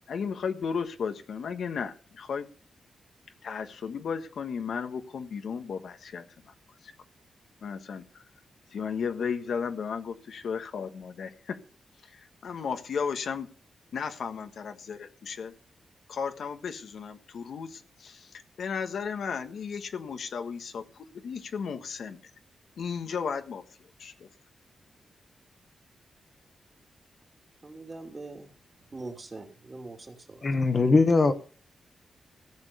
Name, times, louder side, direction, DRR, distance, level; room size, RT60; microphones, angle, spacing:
voice 1, 0.1-2.5 3.4-6.2 6.8-6.9 7.6-8.2 8.7-11.6 12.0-13.5 13.9-15.5 16.1-22.2 22.8-23.6 24.0-24.3, left 6 dB, 75° left, 7 dB, 1.4 m, -34 dB
voice 2, 27.6-28.5 28.9-30.5, right 2 dB, 30° right, 3 dB, 2.6 m, -42 dB
voice 3, 30.4-31.3, left 3 dB, 40° left, 7 dB, 1.4 m, -21 dB
15.5 x 7.2 x 6.8 m, 0.41 s
cardioid pair, 105°, 0 cm